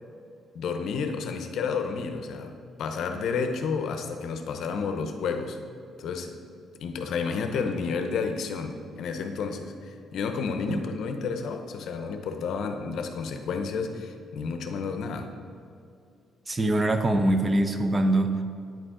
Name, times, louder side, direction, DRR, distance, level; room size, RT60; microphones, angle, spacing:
voice 1, 0.5-5.6 6.0-6.4 6.8-15.3, left 5 dB, 75° left, 6 dB, 0.7 m, -31 dB
voice 2, 16.5-18.4, right 1 dB, 25° right, 7 dB, 0.6 m, -23 dB
9.1 x 4.9 x 3.7 m, 2.4 s
cardioid pair, 90°, 0 cm